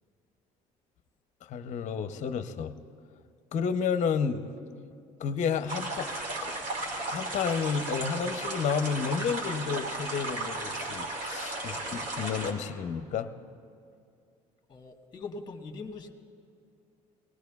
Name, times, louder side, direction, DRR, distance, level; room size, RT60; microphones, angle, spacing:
voice 1, 1.5-2.7 3.5-4.5 5.2-6.1 6.4-6.5 7.1-13.3, left 6 dB, 50° left, 9 dB, 0.7 m, -31 dB
sound 1, 5.7-12.5, right 2 dB, 60° right, 2.3 m, -35 dB
voice 2, 14.7-16.1, left 3 dB, 25° left, 3 dB, 1.4 m, -41 dB
19.0 x 18.5 x 2.3 m, 2.4 s
supercardioid pair, 75°, 16 cm